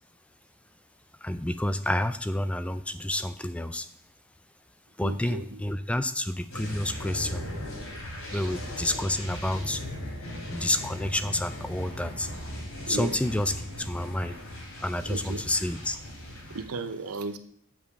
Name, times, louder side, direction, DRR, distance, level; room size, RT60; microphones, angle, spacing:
voice 1, 1.2-3.9 5.0-7.4 8.3-9.8 10.5-12.3 12.9-14.4 14.8-16.0, left 1 dB, 5° left, 12 dB, 0.3 m, -29 dB
voice 2, 5.0-5.6 8.3-8.5 12.9-13.2 15.1-15.4 16.5-17.4, right 3 dB, 85° right, 10 dB, 0.8 m, -35 dB
sound 1, 6.5-16.6, left 1 dB, 75° left, 3.2 m, -38 dB
7.5 x 5.2 x 6.6 m, 0.63 s
head